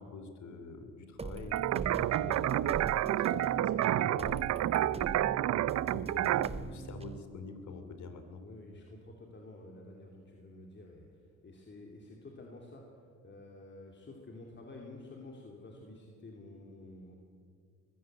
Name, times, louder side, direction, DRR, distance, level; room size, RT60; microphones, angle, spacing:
voice 1, 0.0-2.8 3.3-3.4 3.7-5.5 5.9-8.4, left 4 dB, 70° left, 7 dB, 2.9 m, -46 dB
sound 1, 1.2-7.2, right 4 dB, 20° right, 0.8 m, -42 dB
sound 2, 1.5-6.5, right 13 dB, 60° right, 0.5 m, -29 dB
voice 2, 3.0-3.4 8.4-12.9 13.2-17.1, left 2 dB, 35° left, 1 dB, 2.7 m, -50 dB
21.5 x 15.0 x 7.9 m, 2.2 s
cardioid pair, 90°, 30 cm